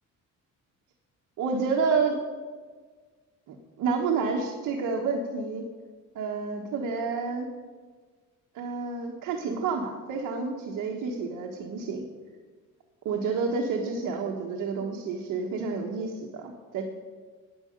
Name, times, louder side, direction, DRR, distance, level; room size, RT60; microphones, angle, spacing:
voice 1, 1.4-2.2 3.5-5.6 6.1-7.5 8.5-12.0 13.0-16.8, right 4 dB, 70° right, 0 dB, 1.4 m, -29 dB
10.5 x 9.0 x 6.6 m, 1.5 s
cardioid pair, 175°, 31 cm